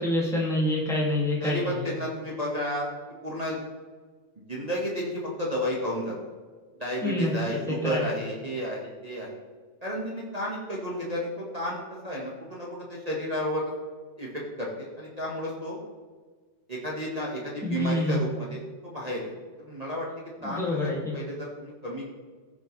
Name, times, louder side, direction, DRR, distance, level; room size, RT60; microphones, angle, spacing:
voice 1, 0.0-1.8 7.0-8.1 17.6-18.2 20.4-21.1, left 1 dB, ahead, -5 dB, 1.6 m, -27 dB
voice 2, 1.4-2.9 3.2-3.6 4.5-6.1 6.8-9.3 9.8-13.6 14.2-15.8 16.7-19.3 19.6-20.1 20.4-22.0, equal, 25° right, -4 dB, 0.8 m, -32 dB
16.0 x 6.6 x 3.2 m, 1.5 s
omnidirectional pair, 3.3 m